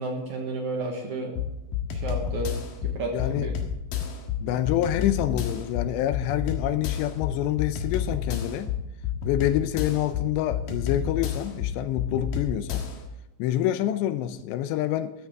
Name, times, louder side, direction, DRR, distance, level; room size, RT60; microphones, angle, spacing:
voice 1, 0.0-1.3 1.9-2.6 2.8-3.7 4.5-4.6, right 2 dB, 70° right, 1 dB, 1.8 m, -32 dB
sound 1, 1.4-13.1, left 8 dB, 60° left, 2.8 m, -31 dB
voice 2, 3.1-3.5 4.4-8.7 9.2-12.9 13.4-15.1, left 12 dB, 80° left, 11 dB, 2.7 m, -27 dB
13.5 x 13.5 x 3.6 m, 0.94 s
omnidirectional pair, 5.4 m